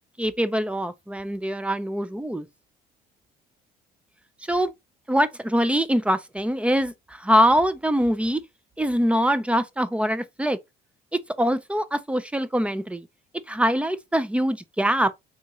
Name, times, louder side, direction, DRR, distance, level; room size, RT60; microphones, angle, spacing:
voice 1, 0.2-2.5 4.5-4.7 5.1-8.4 8.8-10.6 11.4-13.1 13.5-15.2, equal, 5° right, 0.4 m, -23 dB
3.6 x 2.7 x 2.9 m
cardioid pair, 110°, 17 cm